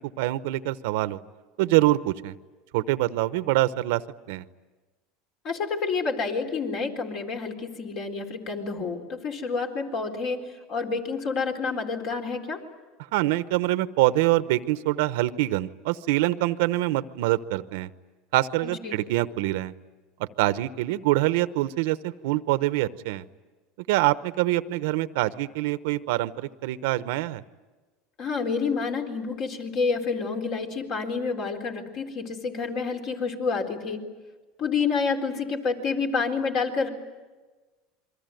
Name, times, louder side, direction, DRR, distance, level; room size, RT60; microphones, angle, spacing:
voice 1, 0.2-1.2 1.6-2.3 2.7-4.0 4.3-4.4 13.1-17.9 18.3-19.7 20.4-23.2 23.9-27.4, right 17 dB, 75° right, 14 dB, 0.9 m, -25 dB
voice 2, 5.4-12.6 18.6-19.0 28.2-34.0 34.6-36.9, left 4 dB, 50° left, 3 dB, 4.0 m, -28 dB
28.0 x 23.0 x 9.2 m, 1.3 s
supercardioid pair, 120°, 0 cm